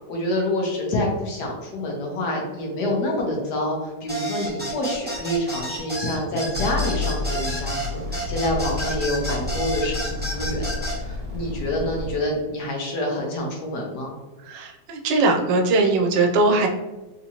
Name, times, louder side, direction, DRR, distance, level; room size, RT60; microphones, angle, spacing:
voice 1, 0.1-14.1, left 1 dB, 70° left, 0 dB, 1.3 m, -27 dB
sound 1, 4.1-11.0, right 1 dB, 10° right, 0.7 m, -30 dB
sound 2, 6.5-12.2, left 3 dB, 60° right, 1.4 m, -30 dB
voice 2, 14.5-16.7, right 3 dB, 85° right, 2 dB, 1.2 m, -20 dB
3.7 x 2.8 x 2.8 m, 1.2 s
omnidirectional pair, 1.9 m